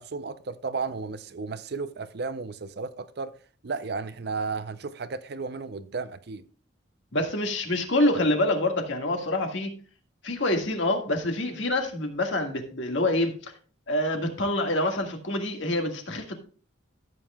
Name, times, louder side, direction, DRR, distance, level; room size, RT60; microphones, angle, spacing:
voice 1, 0.0-3.3 3.6-6.4, right 4 dB, 50° right, 0.5 m, -34 dB
voice 2, 7.1-9.7 10.2-13.5 13.9-16.4, left 1 dB, 65° left, 1.7 m, -26 dB
14.5 x 7.6 x 2.2 m
head